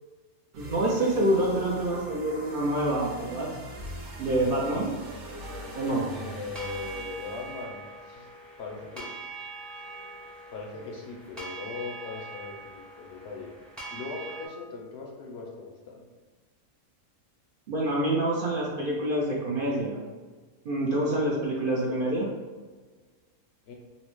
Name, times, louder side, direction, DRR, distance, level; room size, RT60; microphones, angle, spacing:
sound 1, 0.5-7.6, right 1 dB, 90° right, 1.1 m, -42 dB
voice 1, 0.6-3.5 4.2-4.9 5.8-6.1 17.7-20.0 20.6-22.3, right 1 dB, 60° right, -4 dB, 0.6 m, -27 dB
sound 2, 5.4-14.5, right 3 dB, ahead, 0.5 m, -43 dB
voice 2, 6.1-8.3 8.6-9.1 10.5-13.5 13.9-16.1 23.7-23.8, left 4 dB, 65° left, 0 dB, 0.7 m, -39 dB
3.9 x 2.1 x 3.0 m, 1.4 s
omnidirectional pair, 1.3 m